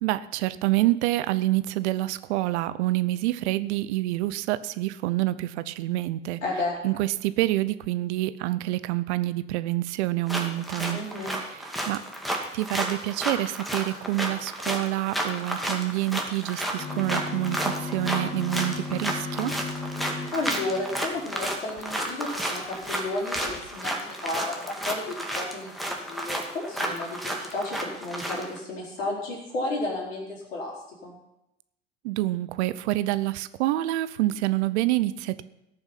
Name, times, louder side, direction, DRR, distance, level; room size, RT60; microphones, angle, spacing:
voice 1, 0.0-6.4 6.8-11.0 11.4-12.0 12.5-19.5 32.0-35.4, right 16 dB, 60° right, 15 dB, 0.8 m, -27 dB
voice 2, 6.4-6.8 10.9-11.4 20.3-25.7 26.1-30.7 31.0-31.2, left 2 dB, 80° left, -2 dB, 4.5 m, -32 dB
sound 1, 10.3-28.6, right 1 dB, ahead, 2.3 m, -32 dB
sound 2, 16.8-21.8 22.4-22.5 22.7-22.9 23.3-23.7, left 3 dB, 35° left, 2.3 m, -36 dB
17.5 x 7.1 x 5.8 m, 0.84 s
figure-of-eight pair, 75°, 39 cm